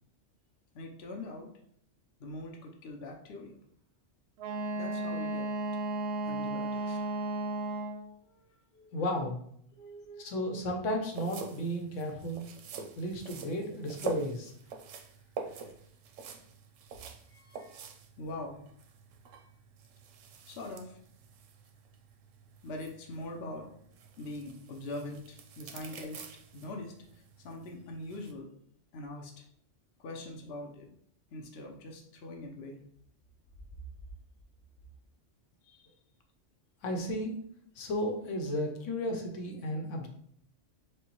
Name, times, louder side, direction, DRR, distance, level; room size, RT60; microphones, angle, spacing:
voice 1, 0.7-1.5 2.2-3.6 4.7-5.5 6.2-7.3 8.3-9.0 9.7-10.3 14.7-14.8 15.5-15.8 17.3-17.9 18.2-18.6 20.5-21.0 22.6-23.7 24.2-26.3 26.5-28.5 28.9-29.5 30.0-30.9 31.3-32.8 35.6-35.9, left 2 dB, 60° left, 1 dB, 0.9 m, -43 dB
Wind instrument woodwind instrument, 4.4-8.1, right 1 dB, 65° right, 0.7 m, -34 dB
voice 2, 8.9-9.4 10.2-12.4 13.0-14.5 36.8-37.4 37.8-40.1, equal, 80° left, 3 dB, 1.1 m, -34 dB
sound 1, 11.0-28.3, right 5 dB, 85° right, 0.9 m, -46 dB
6.3 x 2.2 x 3.0 m, 0.65 s
omnidirectional pair, 1.3 m